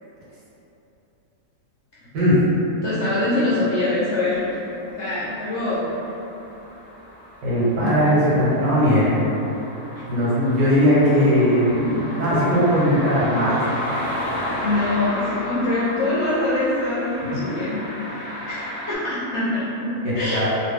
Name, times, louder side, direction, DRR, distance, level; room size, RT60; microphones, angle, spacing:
voice 1, 2.8-4.5 4.9-5.8 7.8-7.9 14.6-17.8 18.1-20.5, left 2 dB, 65° left, -10 dB, 0.7 m, -24 dB
sound 1, 4.3-19.0, equal, 5° right, 1.2 m, -33 dB
voice 2, 7.4-9.1 10.1-13.6 17.4-17.5 20.0-20.5, equal, 90° right, -9 dB, 1.6 m, -19 dB
2.9 x 2.6 x 3.4 m, 3.0 s
omnidirectional pair, 1.8 m